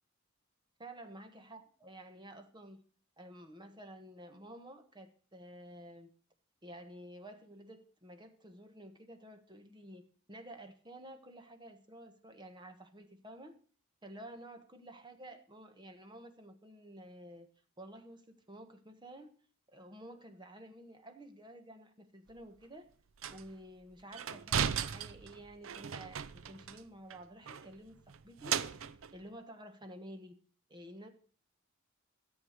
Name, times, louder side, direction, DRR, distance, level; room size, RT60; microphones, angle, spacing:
voice 1, 0.8-2.8 3.2-6.1 6.6-13.6 14.0-17.5 17.8-19.3 19.7-22.9 23.3-28.6 29.1-30.4 30.7-31.1, right 1 dB, 20° right, 7 dB, 1.4 m, -51 dB
sound 1, 22.3-22.4 23.2-23.5 24.1-26.8 27.1-27.2 27.5-29.2, right 8 dB, 70° right, 0.6 m, -37 dB
13.5 x 7.9 x 6.6 m, 0.43 s
head